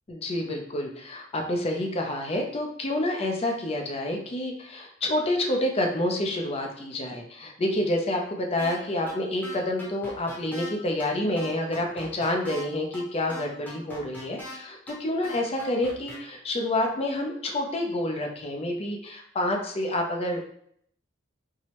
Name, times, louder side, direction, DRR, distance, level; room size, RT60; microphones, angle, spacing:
voice 1, 0.1-20.5, left 1 dB, 30° left, 2 dB, 0.5 m, -28 dB
sound 1, 8.6-8.8 9.1-9.2 9.4-10.7 11.0-11.1 11.4-12.6 12.9-13.0 13.3-14.6 14.9-15.0 15.2-16.2, left 1 dB, 10° left, 0.9 m, -40 dB
4.5 x 2.1 x 2.9 m, 0.68 s
head